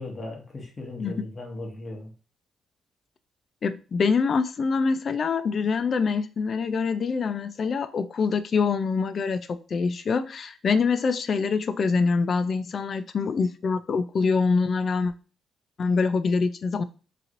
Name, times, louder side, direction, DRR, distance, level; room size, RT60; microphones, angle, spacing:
voice 1, 0.0-2.1, left 2 dB, 35° left, 1.1 m, -37 dB
voice 2, 3.6-15.1 15.8-16.8, left 5 dB, 50° left, 0.3 m, -25 dB
3.1 x 2.8 x 2.5 m
cardioid pair, 90°, 0 cm